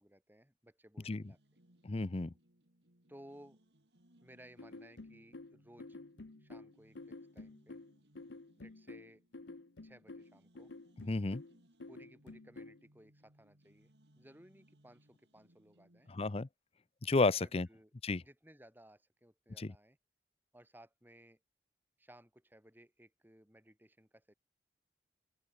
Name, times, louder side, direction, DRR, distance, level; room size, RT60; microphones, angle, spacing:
voice 1, 0.0-1.4 3.1-3.6 4.2-6.0 6.4-7.8 8.6-9.2 9.8-10.7 11.9-16.1 17.3-17.9 18.2-20.0 20.5-21.4 22.0-24.3, right 1 dB, 10° right, 5.7 m, -60 dB
sound 1, 1.2-16.3, right 1 dB, 70° right, 3.8 m, -68 dB
voice 2, 1.8-2.3 11.1-11.4 16.1-16.5 17.0-17.7 18.0-18.2 19.6-19.7, left 3 dB, 35° left, 0.6 m, -32 dB
sound 2, 4.6-12.8, left 2 dB, 85° left, 1.0 m, -50 dB
open air
head